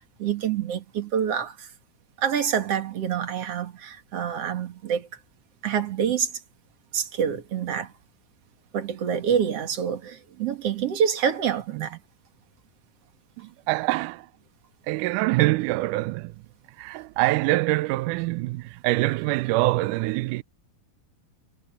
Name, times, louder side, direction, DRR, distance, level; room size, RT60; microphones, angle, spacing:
voice 1, 0.2-1.7 2.2-5.1 5.6-6.3 6.9-7.9 8.7-12.0, right 8 dB, 50° right, 2.5 m, -26 dB
voice 2, 13.4-14.3 14.9-16.4 16.8-20.4, right 20 dB, 80° right, 1.9 m, -25 dB
omnidirectional pair, 4.0 m